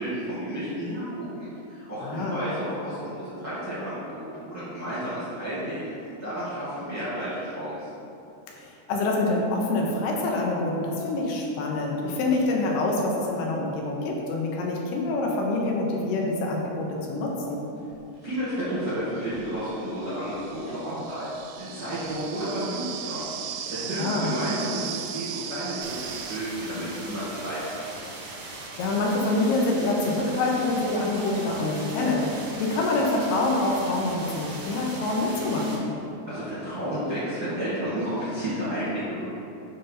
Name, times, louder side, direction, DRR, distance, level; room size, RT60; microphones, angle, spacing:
voice 1, 0.0-5.9 6.2-7.9 18.2-21.3 21.6-23.2 23.7-24.8 25.1-28.0 36.3-39.3, equal, 50° right, -12 dB, 1.3 m, -31 dB
voice 2, 2.0-2.4 8.5-17.6 23.9-24.3 28.8-35.9, left 2 dB, 80° left, -1 dB, 2.8 m, -26 dB
sound 1, 17.9-18.0 18.9-26.4, right 9 dB, 85° right, 2.6 m, -37 dB
sound 2, 25.8-35.8, right 2 dB, 70° right, 1.7 m, -40 dB
8.0 x 3.9 x 5.5 m, 2.7 s
omnidirectional pair, 4.8 m